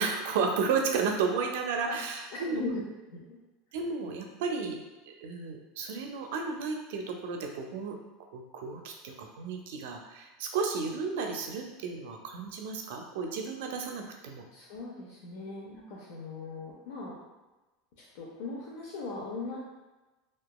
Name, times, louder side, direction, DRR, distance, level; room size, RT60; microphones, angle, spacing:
voice 1, 0.0-2.6 3.7-4.8 5.1-8.0 8.3-14.5, right 5 dB, 75° right, 3 dB, 0.4 m, -33 dB
voice 2, 2.3-2.8 3.1-3.4 14.5-17.2 18.0-19.6, left 3 dB, 70° left, -4 dB, 0.5 m, -39 dB
2.8 x 2.3 x 2.3 m, 1.1 s
supercardioid pair, 145°, 0 cm